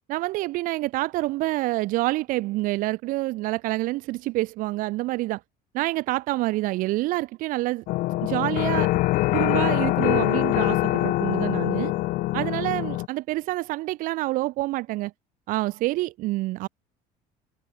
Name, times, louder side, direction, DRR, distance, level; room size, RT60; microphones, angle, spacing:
voice 1, 0.1-5.4 5.7-7.8 8.2-8.9 9.3-11.9 12.3-15.1 15.5-16.7, right 19 dB, 55° right, 1.9 m, -27 dB
sound 1, 7.9-13.1, left 19 dB, 50° left, 0.8 m, -24 dB
cardioid pair, 175°, 16 cm